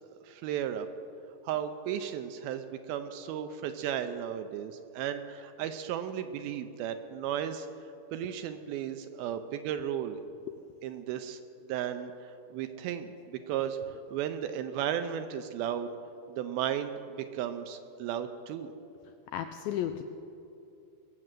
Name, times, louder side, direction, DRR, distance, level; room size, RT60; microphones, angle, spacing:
voice 1, 0.2-0.9 1.4-7.7 8.1-10.2 10.8-13.8 14.1-15.9 16.3-18.7, right 9 dB, 80° right, 9 dB, 2.3 m, -35 dB
voice 2, 19.3-20.0, left 11 dB, 90° left, 7 dB, 2.0 m, -33 dB
22.0 x 7.6 x 7.6 m, 2.8 s
omnidirectional pair, 4.7 m